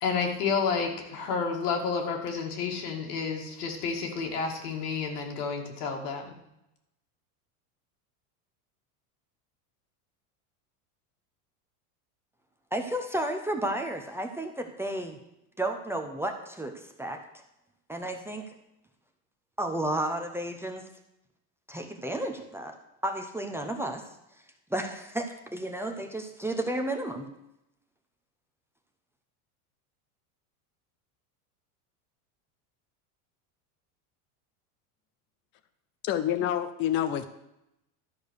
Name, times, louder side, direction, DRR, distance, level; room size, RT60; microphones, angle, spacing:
voice 1, 0.0-6.3, left 5 dB, 85° left, 2 dB, 2.4 m, -30 dB
voice 2, 12.7-15.2 15.6-17.2 17.9-18.4 19.6-20.9 21.7-22.8 23.0-24.0 24.7-27.3, right 1 dB, 5° right, 3 dB, 0.7 m, -32 dB
voice 3, 36.0-37.3, left 10 dB, 30° left, 10 dB, 0.5 m, -27 dB
12.0 x 5.0 x 6.5 m, 0.85 s
supercardioid pair, 130°, 45 cm